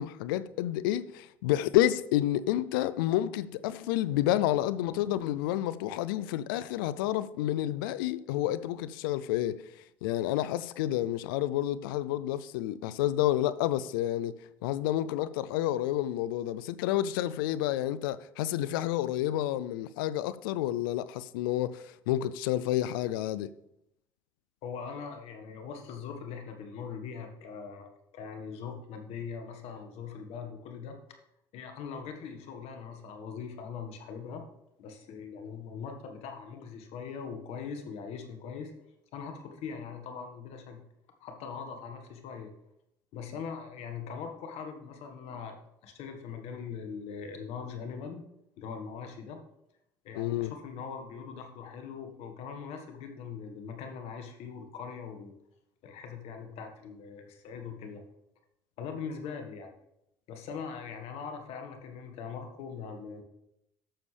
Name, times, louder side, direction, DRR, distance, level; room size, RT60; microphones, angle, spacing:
voice 1, 0.0-9.6 10.0-14.3 14.6-23.5 50.1-50.5, left 13 dB, 85° left, 0.4 m, -29 dB
voice 2, 24.6-27.9 28.1-31.0 31.5-34.4 34.8-38.7 39.1-40.8 41.2-42.5 43.1-48.2 48.6-49.4 50.0-55.3 55.8-58.0 58.8-59.7 60.3-63.2, left 6 dB, 65° left, 1.5 m, -41 dB
11.5 x 6.8 x 3.3 m
hypercardioid pair, 70°, 11 cm